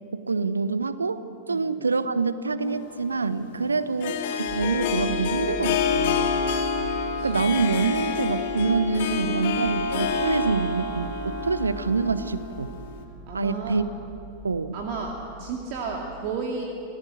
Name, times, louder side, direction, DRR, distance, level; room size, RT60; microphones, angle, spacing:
voice 1, 0.1-1.2 1.5-6.3 7.2-12.7 13.3-13.8 14.4-14.7, right 4 dB, 75° right, 14 dB, 1.0 m, -26 dB
Harp, 2.6-13.0, left 6 dB, 55° left, 2.2 m, -28 dB
sound 1, 4.5-16.0, right 2 dB, 20° right, 7.1 m, -41 dB
voice 2, 6.8-7.5 13.3-13.8 14.7-16.6, right 4 dB, 45° right, 0 dB, 2.4 m, -33 dB
27.0 x 17.5 x 7.9 m, 2.7 s
figure-of-eight pair, 90°, 0 cm